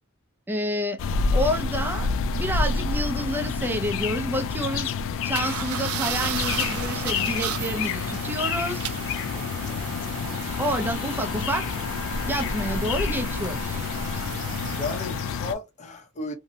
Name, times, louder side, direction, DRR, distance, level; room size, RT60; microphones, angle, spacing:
voice 1, 0.5-1.0 1.3-2.1 2.3-4.9 5.2-8.9 10.6-11.7 12.2-13.9, equal, 10° right, 0.4 m, -29 dB
sound 1, 1.0-15.5, left 5 dB, 65° left, 0.3 m, -28 dB
sound 2, 5.3-15.5, right 9 dB, 85° right, 0.4 m, -35 dB
voice 2, 9.4-9.8 14.8-16.3, left 3 dB, 35° left, 0.7 m, -35 dB
2.7 x 2.0 x 2.7 m
head